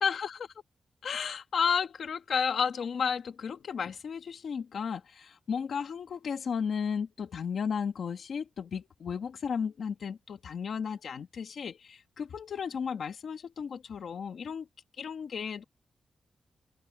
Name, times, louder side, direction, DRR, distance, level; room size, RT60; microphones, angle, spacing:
voice 1, 0.0-0.5 1.0-14.7 15.0-15.6, left 6 dB, 65° left, 1.4 m, -33 dB
open air
wide cardioid pair, 165°, 0 cm